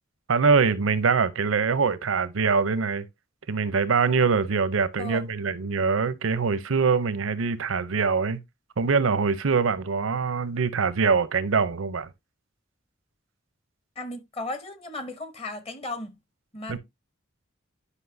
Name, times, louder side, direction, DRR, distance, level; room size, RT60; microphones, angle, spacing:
voice 1, 0.3-3.0 3.5-8.4 8.8-12.1 16.7-16.8, right 5 dB, 85° right, 0.6 m, -23 dB
voice 2, 14.0-16.2 16.5-16.8, left 2 dB, 30° left, 0.8 m, -35 dB
10.0 x 5.4 x 2.6 m
head